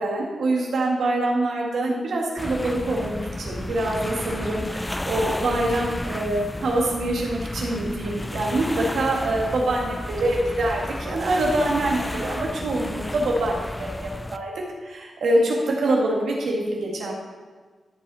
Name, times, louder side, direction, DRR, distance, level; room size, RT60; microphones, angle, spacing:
voice 1, 0.0-14.5 14.8-17.1, right 1 dB, 85° right, -2 dB, 2.0 m, -25 dB
sound 1, 2.4-14.4, left 1 dB, 10° left, 0.3 m, -32 dB
13.0 x 5.5 x 4.3 m, 1.4 s
wide cardioid pair, 120°, 0 cm